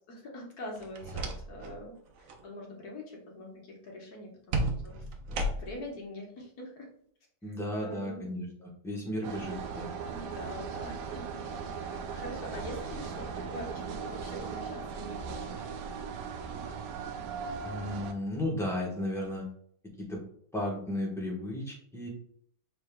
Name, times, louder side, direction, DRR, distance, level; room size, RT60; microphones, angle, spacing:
voice 1, 0.1-4.9 5.5-6.9 7.5-7.6 7.8-8.2 10.1-15.7, left 1 dB, 65° left, -1 dB, 1.6 m, -44 dB
sound 1, 0.8-1.8 2.1-2.4 4.5-5.9, right 1 dB, 65° right, 0.9 m, -33 dB
voice 2, 7.4-9.9 17.6-19.5 20.0-20.2 20.5-22.1, left 1 dB, ahead, -3 dB, 0.8 m, -34 dB
sound 2, 9.2-18.1, right 6 dB, 85° right, 1.2 m, -38 dB
5.1 x 3.7 x 2.2 m, 0.64 s
omnidirectional pair, 1.8 m